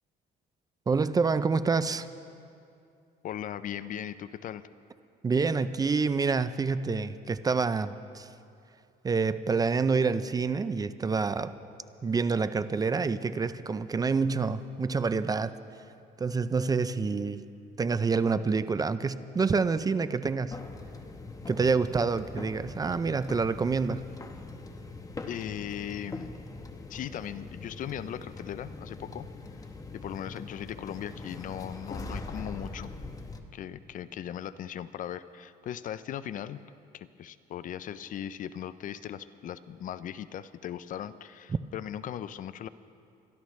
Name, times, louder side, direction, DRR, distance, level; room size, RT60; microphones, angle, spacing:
voice 1, 0.9-2.1 5.2-8.3 9.0-11.5 12.0-15.5 16.2-17.4 17.8-20.6 21.5-24.0, right 4 dB, 20° right, 13 dB, 0.4 m, -27 dB
voice 2, 3.2-4.6 25.3-26.3 26.9-29.2 29.9-32.9 33.5-36.6 36.9-42.7, left 10 dB, 50° left, 15 dB, 0.5 m, -38 dB
sound 1, 20.5-33.4, left 3 dB, 20° left, 1.0 m, -42 dB
23.5 x 13.0 x 3.2 m, 2.6 s
cardioid pair, 110°, 17 cm